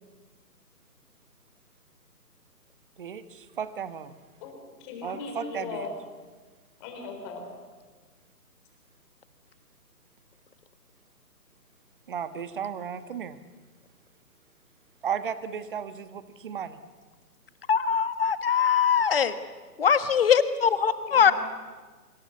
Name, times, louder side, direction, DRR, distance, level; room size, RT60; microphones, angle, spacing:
voice 1, 3.0-4.2 5.0-5.8 12.1-13.4 15.0-16.8, right 7 dB, 30° right, 12 dB, 1.4 m, -34 dB
voice 2, 4.4-5.9 6.8-7.4 21.1-21.3, left 4 dB, 20° left, 4 dB, 4.3 m, -38 dB
voice 3, 17.7-19.3 19.8-21.3, left 7 dB, 35° left, 12 dB, 1.4 m, -22 dB
25.5 x 25.0 x 8.4 m, 1.3 s
figure-of-eight pair, 150°, 48 cm